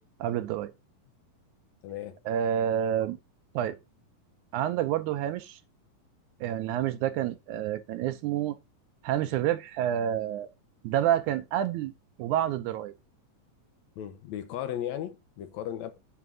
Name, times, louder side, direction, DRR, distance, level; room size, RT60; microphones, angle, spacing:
voice 1, 0.2-0.7 2.3-3.2 3.6-3.8 4.5-5.6 6.4-8.6 9.0-10.5 10.8-11.9 12.2-12.9, right 11 dB, 80° right, 1.8 m, -28 dB
voice 2, 1.8-2.2 14.0-15.9, left 11 dB, 75° left, 1.7 m, -36 dB
9.3 x 3.7 x 6.2 m
omnidirectional pair, 4.1 m